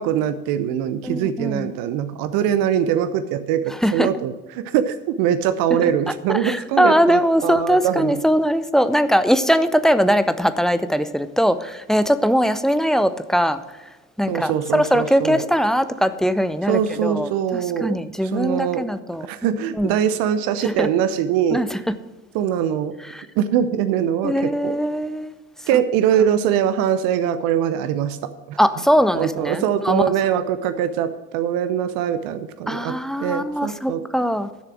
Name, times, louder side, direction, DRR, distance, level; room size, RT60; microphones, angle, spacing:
voice 1, 0.0-8.2 14.3-15.4 16.7-18.0 18.2-18.8 19.2-21.6 22.3-22.9 23.4-24.7 25.7-28.6 29.1-34.0, right 9 dB, 55° right, 11 dB, 0.8 m, -22 dB
voice 2, 1.0-1.7 3.8-4.1 6.3-13.6 14.2-19.3 19.8-20.0 20.6-20.9 21.5-21.8 23.1-23.3 24.2-25.3 28.6-30.3 32.7-34.5, equal, ahead, 13 dB, 0.5 m, -20 dB
11.5 x 6.7 x 6.1 m, 1.2 s
figure-of-eight pair, 60°, 41 cm